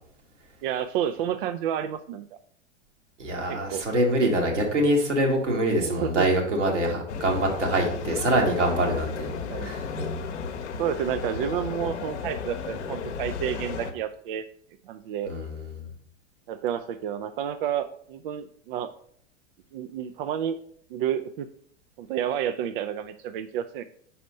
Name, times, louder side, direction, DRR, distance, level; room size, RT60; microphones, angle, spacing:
voice 1, 0.6-2.3 3.5-3.8 5.8-6.3 6.7-6.8 9.5-9.7 10.8-14.5 14.9-15.3 16.5-18.9 19.7-20.6 20.9-21.5 22.0-23.8, right 9 dB, 50° right, 9 dB, 0.4 m, -30 dB
voice 2, 3.2-9.3 9.6-10.1 15.3-15.9, right 1 dB, 75° right, 0 dB, 1.8 m, -25 dB
sound 1, 7.1-13.9, left 5 dB, 65° left, 0.8 m, -34 dB
5.0 x 4.2 x 5.4 m, 0.64 s
figure-of-eight pair, 90°, 36 cm